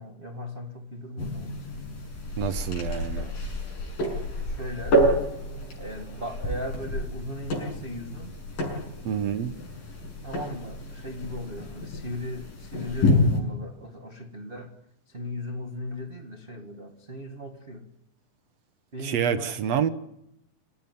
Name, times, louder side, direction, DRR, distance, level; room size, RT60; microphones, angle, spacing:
voice 1, 0.0-1.8 4.5-5.0 5.8-8.4 10.2-14.7 15.1-17.9 18.9-19.5, left 1 dB, 30° right, 4 dB, 1.0 m, -37 dB
sound 1, 1.2-13.4, left 1 dB, 85° left, 8.3 m, -29 dB
voice 2, 2.4-3.3 9.1-9.5 19.0-19.9, right 8 dB, 65° right, 12 dB, 1.8 m, -27 dB
27.5 x 16.0 x 9.4 m, 0.79 s
omnidirectional pair, 3.9 m